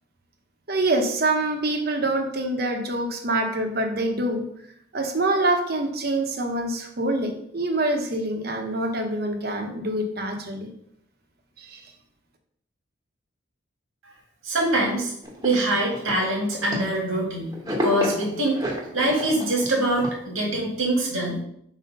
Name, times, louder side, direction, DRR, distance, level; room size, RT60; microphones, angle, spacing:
voice 1, 0.7-4.4 4.9-10.7 11.6-11.8, right 2 dB, 50° right, 3 dB, 0.9 m, -25 dB
voice 2, 14.4-15.1 15.4-18.7 18.9-21.4, right 1 dB, 80° right, -1 dB, 1.9 m, -24 dB
sound 1, 15.2-17.2 17.5-20.1, equal, 20° right, 1.0 m, -31 dB
4.4 x 4.2 x 5.4 m, 0.71 s
head